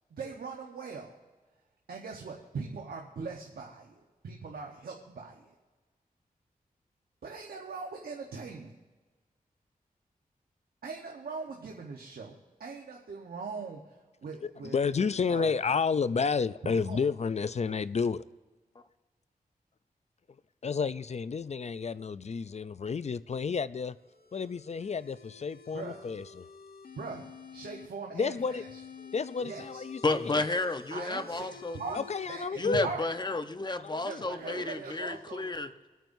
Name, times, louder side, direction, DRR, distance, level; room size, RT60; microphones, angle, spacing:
voice 1, 0.1-1.1 1.9-5.5 7.2-8.8 10.8-12.3 12.6-15.6 16.6-17.0 25.7-26.1 26.9-28.8 29.4-29.8 30.9-32.0 32.3-33.1 34.0-35.7, right 4 dB, 80° right, 0 dB, 1.1 m, -41 dB
voice 2, 14.4-18.2 20.6-23.9 24.3-26.5 28.1-28.6 29.1-30.0 31.9-32.9 33.8-34.2, left 5 dB, 45° left, 15 dB, 0.4 m, -31 dB
sound 1, 23.9-27.9 28.4-32.4, left 5 dB, 85° left, 1.0 m, -49 dB
voice 3, 30.0-31.8 32.6-35.7, left 2 dB, 30° left, 8 dB, 0.9 m, -31 dB
26.0 x 9.1 x 2.7 m, 1.3 s
cardioid pair, 60°, 15 cm